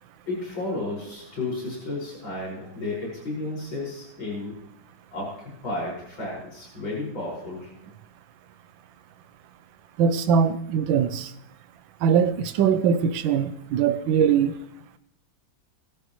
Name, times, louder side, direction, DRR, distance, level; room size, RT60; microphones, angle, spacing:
voice 1, 0.3-4.5 5.1-7.7, left 2 dB, 80° left, -5 dB, 6.6 m, -32 dB
voice 2, 10.0-11.3 12.0-14.5, right 7 dB, 80° right, 10 dB, 1.6 m, -21 dB
21.5 x 12.0 x 3.2 m, 0.78 s
omnidirectional pair, 2.1 m